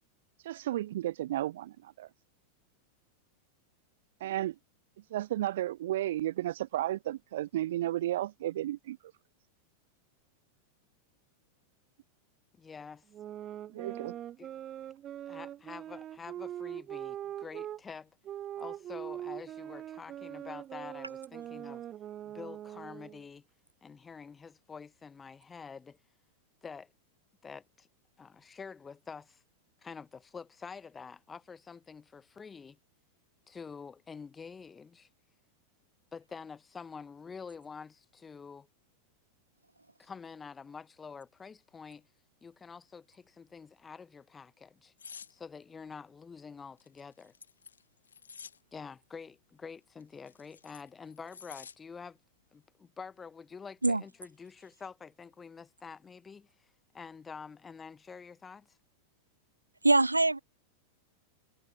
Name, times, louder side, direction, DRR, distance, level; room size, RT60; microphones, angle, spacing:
voice 1, 0.4-2.1 4.2-4.6 5.1-9.0 13.7-14.2, right 14 dB, 55° right, 0.7 m, -33 dB
voice 2, 12.6-13.0 14.4-14.5 15.2-18.1 18.6-21.8 22.2-23.4 23.8-26.0 26.6-26.9 27.4-27.9 28.2-29.4 29.8-32.8 33.5-35.1 36.1-38.7 40.0-42.1 42.4-44.9 45.3-47.3 48.7-52.2 52.5-56.5 56.9-58.8, left 5 dB, 15° left, 1.1 m, -47 dB
sound 1, 13.1-17.8 18.2-23.2, right 11 dB, 30° right, 0.8 m, -42 dB
sound 2, 45.0-45.3 46.8-48.6 50.0-51.8 52.2-52.4, left 6 dB, 70° left, 1.5 m, -50 dB
voice 3, 59.8-60.4, right 2 dB, 85° right, 0.4 m, -23 dB
figure-of-eight pair, 90°, 0 cm